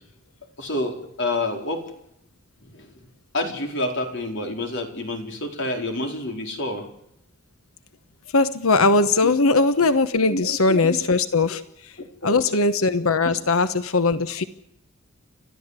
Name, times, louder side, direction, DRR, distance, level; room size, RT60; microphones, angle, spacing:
voice 1, 0.6-1.8 2.7-2.9 3.3-6.9 10.3-11.0 12.2-12.4, left 2 dB, 60° left, 3 dB, 4.5 m, -28 dB
voice 2, 8.3-11.9 12.2-14.4, left 3 dB, 85° left, 12 dB, 1.1 m, -20 dB
30.0 x 13.5 x 8.3 m, 0.76 s
head